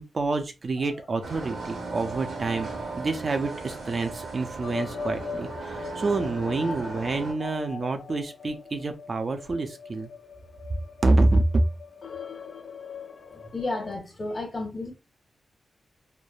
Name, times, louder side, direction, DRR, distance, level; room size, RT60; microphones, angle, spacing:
voice 1, 0.0-2.7 3.0-10.1 11.0-11.6, right 2 dB, 45° right, 0.4 m, -27 dB
sound 1, 0.8-14.0, left 5 dB, 65° left, 0.4 m, -41 dB
sound 2, 1.2-7.3, right 3 dB, 85° right, 1.1 m, -37 dB
voice 2, 13.3-14.9, left 2 dB, 30° left, 0.9 m, -32 dB
3.1 x 2.0 x 2.3 m
wide cardioid pair, 95°, 0 cm